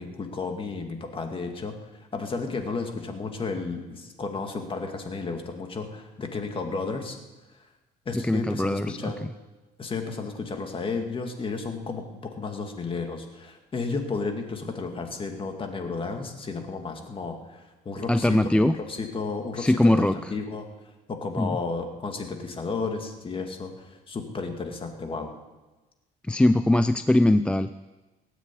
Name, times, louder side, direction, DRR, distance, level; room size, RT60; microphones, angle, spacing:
voice 1, 0.0-7.2 8.1-9.3 9.8-12.0 12.4-20.7 21.1-25.3, left 4 dB, 30° left, 4 dB, 2.2 m, -33 dB
voice 2, 8.2-9.1 18.1-18.8 19.6-20.1 21.4-21.6 26.3-27.7, left 1 dB, 5° left, 11 dB, 0.4 m, -21 dB
18.5 x 9.3 x 8.4 m, 1.2 s
cardioid pair, 110°, 17 cm